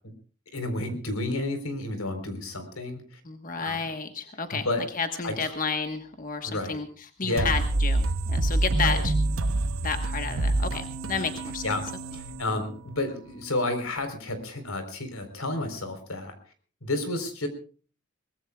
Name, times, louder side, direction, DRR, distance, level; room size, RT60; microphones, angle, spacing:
voice 1, 0.5-3.2 3.6-3.8 4.5-4.8 5.2-5.5 6.4-6.8 7.2-7.5 8.8-9.0 11.6-11.9 12.1-16.4 16.8-17.5, left 2 dB, 90° left, 8 dB, 4.1 m, -31 dB
voice 2, 3.2-4.7 4.9-6.9 7.2-9.1 9.8-11.6, left 5 dB, 40° left, 6 dB, 1.3 m, -31 dB
sound 1, 7.4-13.0, right 2 dB, 70° right, 0.9 m, -27 dB
23.5 x 20.0 x 2.4 m, 0.39 s
head